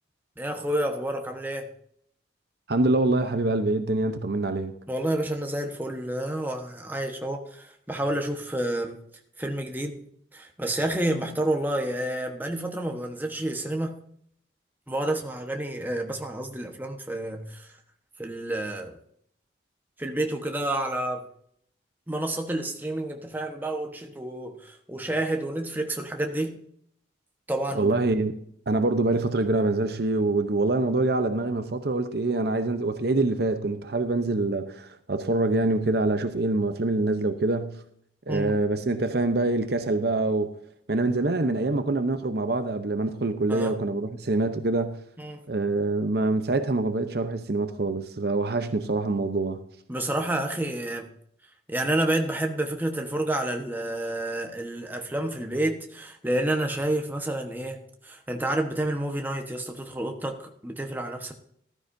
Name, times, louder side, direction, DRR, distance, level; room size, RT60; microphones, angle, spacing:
voice 1, 0.4-1.7 4.9-9.0 9.4-10.0 10.3-14.0 14.9-17.7 18.2-19.0 20.0-21.3 22.1-26.6 27.5-28.0 38.3-38.5 43.5-43.8 45.2-45.4 49.9-51.1 51.7-61.3, right 1 dB, 10° right, 1.2 m, -29 dB
voice 2, 2.7-4.7 27.7-28.3 28.7-37.8 38.3-40.5 40.9-45.0 45.5-49.6, right 2 dB, 55° right, 0.8 m, -25 dB
14.5 x 13.0 x 2.7 m
head